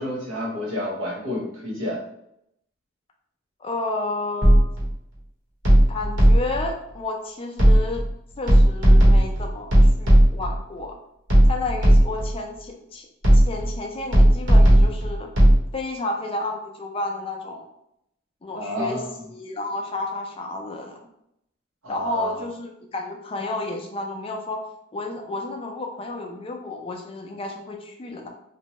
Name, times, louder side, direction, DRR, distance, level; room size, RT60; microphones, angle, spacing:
voice 1, 0.0-2.0 18.5-19.1 21.8-22.4, equal, 90° right, -3 dB, 0.9 m, -29 dB
voice 2, 3.6-4.7 5.9-8.0 8.4-11.0 11.5-13.1 13.5-15.3 15.7-17.7 18.4-21.0 21.9-24.6 24.9-28.3, left 2 dB, 30° left, 2 dB, 0.3 m, -31 dB
sound 1, 4.4-4.9 5.6-6.7 7.6-8.1 8.5-10.6 11.3-12.3 13.2-13.8 14.1-15.6, right 1 dB, 65° right, 1.0 m, -15 dB
2.6 x 2.1 x 3.0 m, 0.77 s
head